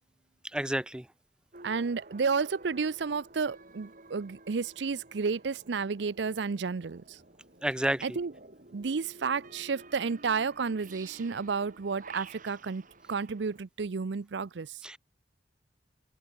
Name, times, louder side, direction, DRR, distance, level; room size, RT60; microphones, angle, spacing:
voice 1, 0.5-1.1 7.6-8.2 14.8-15.0, right 1 dB, 5° right, 0.6 m, -30 dB
sound 1, 1.5-13.6, right 3 dB, 50° right, 6.9 m, -52 dB
voice 2, 1.6-7.2 8.0-8.3 8.7-12.8 13.1-14.8, right 5 dB, 75° right, 0.6 m, -31 dB
open air
head